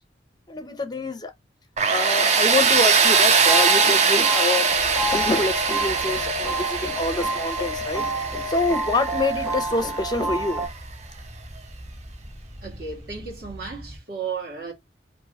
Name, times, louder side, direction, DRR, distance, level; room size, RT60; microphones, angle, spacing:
voice 1, 0.5-1.3 1.9-4.7 5.0-8.0 8.5-10.6, left 2 dB, 20° left, 0.5 m, -26 dB
Tools, 1.8-10.5, right 5 dB, 40° right, 0.5 m, -22 dB
sound 1, 3.0-10.7, left 1 dB, 5° right, 1.4 m, -29 dB
sound 2, 4.7-14.0, equal, 20° right, 1.5 m, -41 dB
voice 2, 12.6-14.7, right 5 dB, 60° right, 1.8 m, -34 dB
3.0 x 2.6 x 3.9 m
head